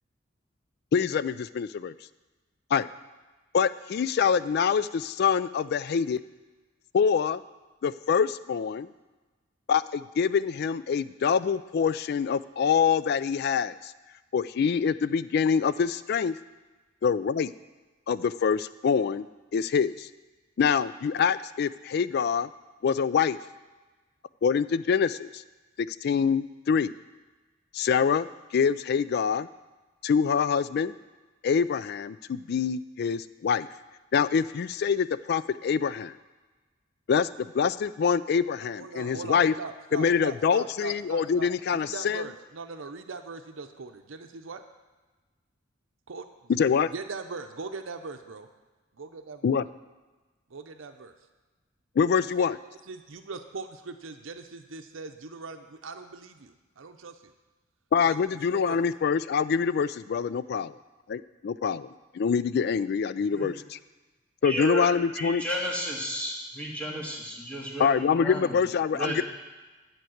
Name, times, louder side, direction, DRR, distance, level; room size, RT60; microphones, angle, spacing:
voice 1, 0.9-1.9 2.7-2.9 3.5-6.2 6.9-7.4 7.8-8.9 9.7-13.9 14.3-16.3 17.0-17.5 18.1-19.3 19.5-20.1 20.6-22.5 22.8-23.4 24.4-25.4 25.8-26.9 27.7-28.3 28.5-29.5 30.0-30.9 31.4-33.7 34.1-36.1 37.1-39.5 39.9-42.2 46.6-46.9 49.4-49.6 52.0-52.6 57.9-60.7 61.1-63.8 64.4-65.4 67.8-69.2, left 6 dB, 55° left, 16 dB, 0.3 m, -25 dB
voice 2, 38.6-44.6 46.1-46.5 46.9-48.5 48.9-49.5 50.5-51.1 52.2-52.5 52.9-57.3 58.1-58.8, right 4 dB, 80° right, 6 dB, 0.7 m, -41 dB
voice 3, 64.4-68.7 68.9-69.2, right 1 dB, 5° left, -3 dB, 1.8 m, -33 dB
10.5 x 4.6 x 7.9 m, 1.2 s
head